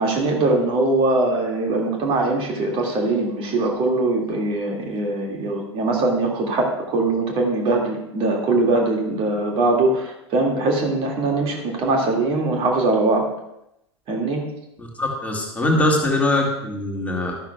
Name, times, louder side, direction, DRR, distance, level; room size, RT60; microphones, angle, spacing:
voice 1, 0.0-13.2 14.1-14.4, right 2 dB, 40° right, 0 dB, 2.2 m, -21 dB
voice 2, 14.8-17.3, left 1 dB, 10° left, -1 dB, 2.1 m, -22 dB
13.0 x 12.0 x 2.3 m, 0.82 s
figure-of-eight pair, 85°, 15 cm